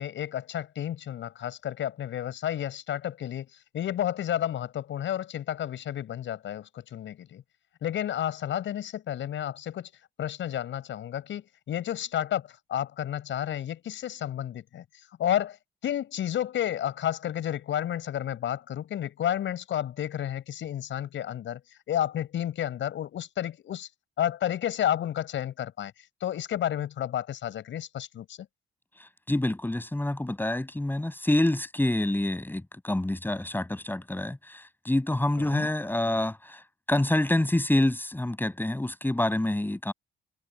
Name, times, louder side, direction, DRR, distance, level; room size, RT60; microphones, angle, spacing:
voice 1, 0.0-3.5 3.7-7.4 7.8-9.9 10.2-14.8 15.2-15.6 15.8-23.9 24.2-25.9 26.2-28.4 35.4-35.7, left 11 dB, 70° left, 6.9 m, -31 dB
voice 2, 29.3-36.6 36.9-39.9, left 1 dB, 10° left, 7.4 m, -27 dB
cardioid pair, 90°, 20 cm